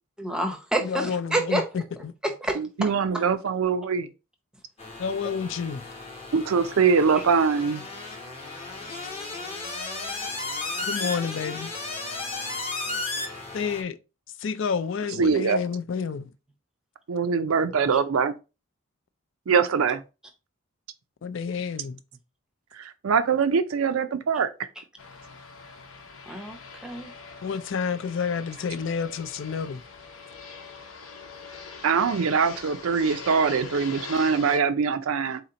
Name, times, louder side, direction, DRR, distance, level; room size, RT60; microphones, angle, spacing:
voice 1, 0.2-1.6 2.2-2.6 3.1-3.2 17.9-18.0 26.3-27.1, right 1 dB, 5° right, 0.6 m, -28 dB
voice 2, 0.8-2.1 5.0-5.9 10.8-11.7 12.9-13.0 13.5-14.0 14.4-16.3 21.2-22.0 27.4-29.8, left 6 dB, 60° left, 0.4 m, -30 dB
voice 3, 2.6-4.1 6.3-7.8 15.2-15.6 17.1-18.3 19.5-20.0 22.8-24.5 31.8-35.4, right 5 dB, 70° right, 0.5 m, -23 dB
sound 1, 4.8-13.8, left 3 dB, 25° left, 0.9 m, -34 dB
Fixed-wing aircraft airplane, 25.0-34.6, left 4 dB, 75° left, 0.9 m, -43 dB
4.1 x 2.8 x 3.8 m
head